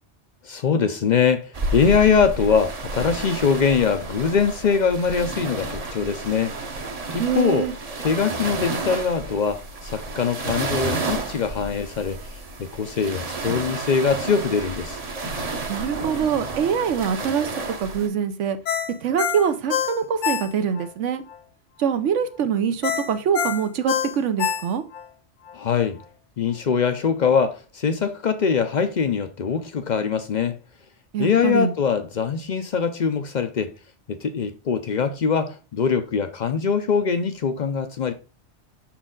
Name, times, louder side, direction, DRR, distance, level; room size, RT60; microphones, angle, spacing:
voice 1, 0.4-6.5 7.1-7.7 8.0-12.2 12.6-15.0 25.5-26.0 26.4-30.6 31.2-33.7 34.1-38.1, left 6 dB, 55° left, 0.5 m, -22 dB
sound 1, 1.5-18.1, right 3 dB, 35° right, 0.8 m, -31 dB
voice 2, 7.2-7.7 15.7-17.5 17.8-18.6 19.0-21.2 21.8-24.8 31.1-31.7, right 7 dB, 80° right, 1.1 m, -24 dB
Ringtone, 18.7-20.9 21.3-21.4 22.8-25.1 25.5-25.6, left 8 dB, 85° left, 1.1 m, -26 dB
6.1 x 4.4 x 3.8 m
omnidirectional pair, 1.2 m